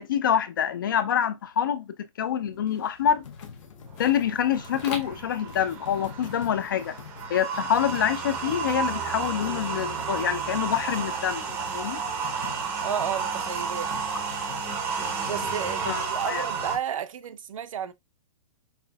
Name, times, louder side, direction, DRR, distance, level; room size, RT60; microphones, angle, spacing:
voice 1, 0.0-3.2 4.0-7.0 7.3-11.5 11.7-12.0 15.9-16.4, left 9 dB, 40° left, 0.4 m, -26 dB
sound 1, 2.4-9.7, left 4 dB, 20° left, 0.8 m, -47 dB
sound 2, 3.2-16.8, left 6 dB, 65° left, 0.8 m, -45 dB
sound 3, 3.9-16.8, right 6 dB, 10° right, 0.6 m, -32 dB
voice 2, 12.8-13.9 15.3-17.9, right 9 dB, 70° right, 0.6 m, -32 dB
5.7 x 2.5 x 2.3 m
hypercardioid pair, 170°, 18 cm